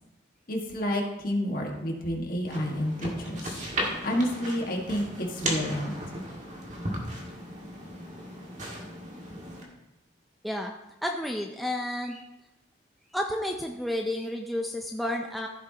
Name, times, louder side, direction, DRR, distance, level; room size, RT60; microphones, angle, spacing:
voice 1, 0.5-3.5 4.0-5.9, equal, 45° left, 0 dB, 1.7 m, -29 dB
sound 1, 2.4-9.6, right 1 dB, 40° right, 1.9 m, -36 dB
voice 2, 11.0-12.2 13.1-15.5, left 1 dB, ahead, 1 dB, 0.5 m, -31 dB
14.5 x 8.2 x 2.9 m, 0.97 s
head